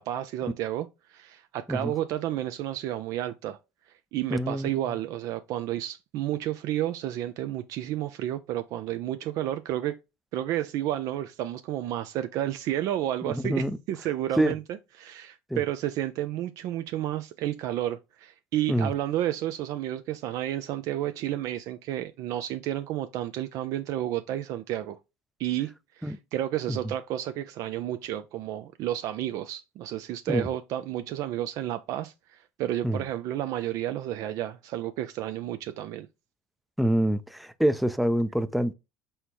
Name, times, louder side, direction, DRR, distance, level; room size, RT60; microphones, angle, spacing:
voice 1, 0.0-3.6 4.1-10.0 10.3-25.0 25.4-36.1, right 12 dB, 60° right, 0.4 m, -31 dB
voice 2, 4.3-4.7 13.2-13.8 14.4-14.5 15.5-15.6 18.7-18.9 26.0-26.2 26.7-26.8 30.3-30.5 32.8-33.0 36.8-38.7, right 1 dB, ahead, 0.4 m, -26 dB
4.3 x 3.5 x 2.8 m
supercardioid pair, 90°, 6 cm